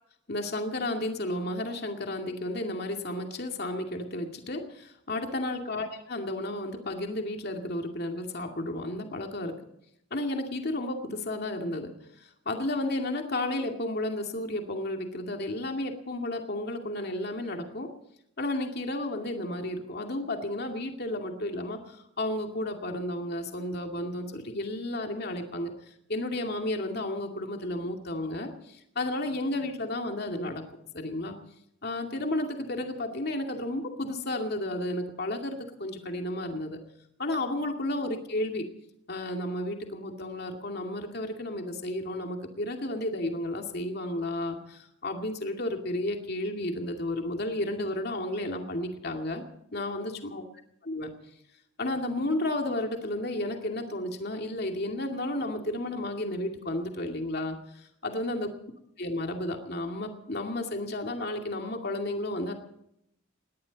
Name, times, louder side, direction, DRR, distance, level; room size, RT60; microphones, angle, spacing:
voice 1, 0.3-9.5 10.1-11.9 12.2-17.9 18.4-25.7 26.1-30.6 30.9-31.4 31.8-36.8 37.2-38.6 39.1-49.4 49.7-50.4 50.8-51.1 51.8-58.5 59.0-62.5, left 1 dB, 50° left, 3 dB, 2.4 m, -32 dB
20.0 x 18.0 x 4.1 m, 0.76 s
head